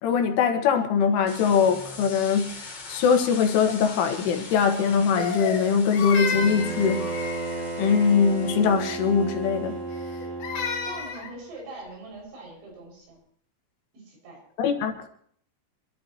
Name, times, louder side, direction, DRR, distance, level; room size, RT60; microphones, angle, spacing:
voice 1, 0.0-2.5 2.9-7.3 7.8-9.8 14.6-15.1, left 6 dB, 80° left, 4.0 m, -22 dB
sound 1, 1.3-9.5, left 3 dB, 35° left, 3.5 m, -42 dB
Crying sobbing, 5.2-7.7 9.9-11.3, left 5 dB, 55° left, 3.8 m, -32 dB
Bowed string instrument, 6.3-11.2, right 3 dB, 15° right, 7.2 m, -33 dB
voice 2, 10.8-13.2 13.9-14.4, right 2 dB, 70° right, 8.6 m, -42 dB
26.5 x 12.5 x 3.1 m
omnidirectional pair, 5.6 m